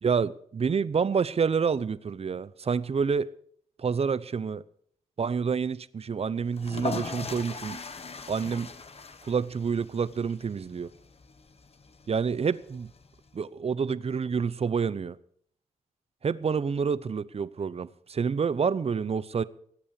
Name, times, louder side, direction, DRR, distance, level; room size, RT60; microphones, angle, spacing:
voice 1, 0.0-3.3 3.8-4.6 5.2-7.8 8.3-8.7 9.2-10.9 12.1-12.9 13.3-15.2 16.2-19.4, right 6 dB, 50° right, 0.7 m, -28 dB
sound 1, 6.5-13.3, left 4 dB, 50° left, 1.4 m, -40 dB
18.0 x 8.7 x 6.8 m
cardioid pair, 55°, 13 cm